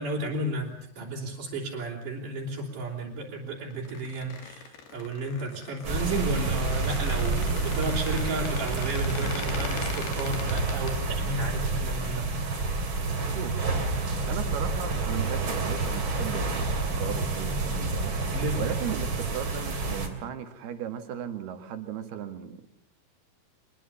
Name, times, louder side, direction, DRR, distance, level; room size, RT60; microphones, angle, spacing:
voice 1, 0.0-4.6 4.9-12.3 18.3-18.6, right 2 dB, 55° right, -4 dB, 5.0 m, -33 dB
Squeak, 3.7-10.9, left 5 dB, 75° left, 4.5 m, -41 dB
sound 1, 5.8-20.1, right 3 dB, 35° right, 3.3 m, -29 dB
voice 2, 14.3-22.7, right 9 dB, 80° right, 8 dB, 3.9 m, -37 dB
25.0 x 21.0 x 7.1 m, 0.70 s
omnidirectional pair, 4.5 m